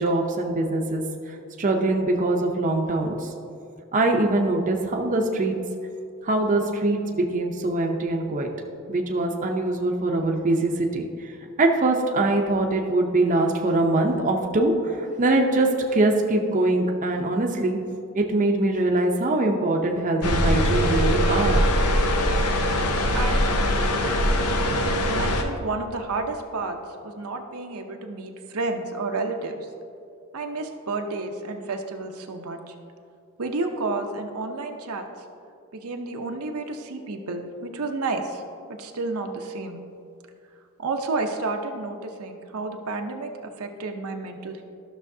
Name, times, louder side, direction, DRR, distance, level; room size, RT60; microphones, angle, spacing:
voice 1, 0.0-3.3 3.9-5.5 6.2-8.5 8.9-11.3 11.6-17.8 18.1-21.6, right 2 dB, 35° right, 2 dB, 0.6 m, -23 dB
sound 1, 20.2-25.4, equal, 90° left, 0.8 m, -22 dB
voice 2, 23.1-24.5 25.1-26.8 27.0-29.7 30.3-32.7 33.4-35.1 35.7-38.4 38.7-39.8 40.8-44.6, right 3 dB, 75° right, 4 dB, 0.7 m, -31 dB
13.0 x 6.3 x 2.7 m, 2.4 s
head